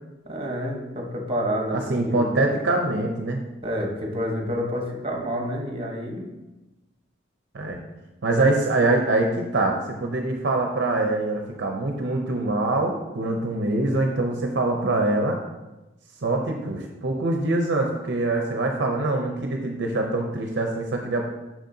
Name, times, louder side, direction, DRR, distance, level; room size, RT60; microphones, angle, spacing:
voice 1, 0.2-2.3 3.6-6.3, equal, 30° right, 0 dB, 1.1 m, -29 dB
voice 2, 1.7-3.4 7.5-7.8 8.2-15.4 16.2-21.3, right 2 dB, 65° right, 2 dB, 0.6 m, -24 dB
6.5 x 6.2 x 2.7 m, 1.0 s
head